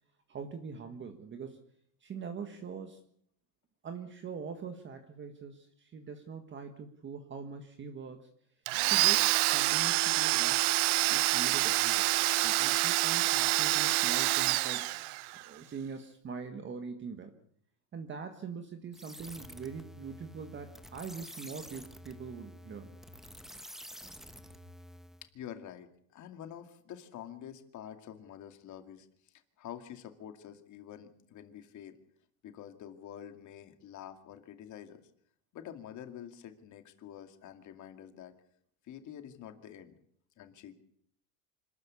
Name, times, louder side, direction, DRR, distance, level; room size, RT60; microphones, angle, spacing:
voice 1, 0.3-1.6 2.0-3.0 3.8-8.3 8.8-10.6 11.1-12.1 12.4-17.3 17.9-22.9, right 5 dB, 25° right, 6 dB, 1.6 m, -43 dB
Domestic sounds home sounds, 8.7-15.5, right 20 dB, 55° right, 0.9 m, -27 dB
sound 1, 18.9-25.3, equal, ahead, 0.9 m, -49 dB
voice 2, 25.3-32.0 32.4-35.0 35.5-38.3 38.8-40.0 40.4-40.8, left 10 dB, 35° left, 7 dB, 2.3 m, -47 dB
26.0 x 13.0 x 8.5 m, 0.68 s
supercardioid pair, 140°, 48 cm